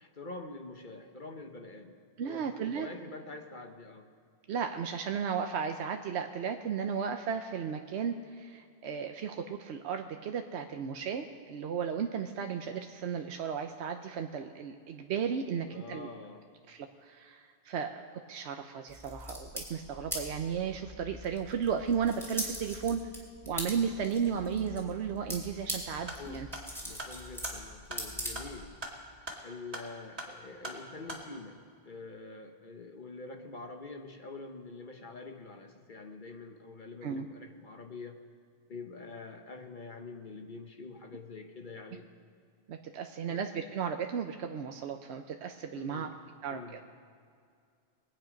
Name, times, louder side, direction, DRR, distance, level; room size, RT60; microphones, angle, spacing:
voice 1, 0.0-4.1 15.6-16.5 25.9-26.5 26.8-28.7 29.4-38.2 38.7-42.1 43.3-43.4 45.7-46.2 46.5-46.8, left 3 dB, 50° left, 5 dB, 1.1 m, -46 dB
voice 2, 2.2-2.9 4.5-16.1 16.7-23.1 23.5-26.5 37.0-37.3 42.7-46.1 46.4-46.8, right 7 dB, 80° right, 5 dB, 1.0 m, -34 dB
sound 1, 18.9-28.8, equal, ahead, 3.0 m, -42 dB
sound 2, 26.1-31.3, right 1 dB, 35° right, 2.1 m, -44 dB
22.5 x 9.0 x 5.2 m, 2.3 s
omnidirectional pair, 1.1 m